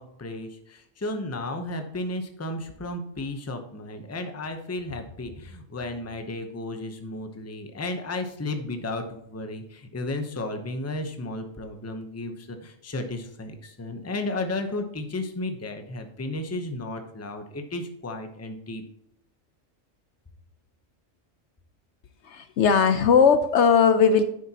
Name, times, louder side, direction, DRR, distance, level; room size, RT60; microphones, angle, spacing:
voice 1, 0.0-18.8, left 2 dB, 15° left, 6 dB, 0.7 m, -33 dB
voice 2, 22.2-24.2, left 6 dB, 65° left, 10 dB, 0.9 m, -18 dB
10.0 x 7.4 x 2.9 m, 0.77 s
omnidirectional pair, 1.4 m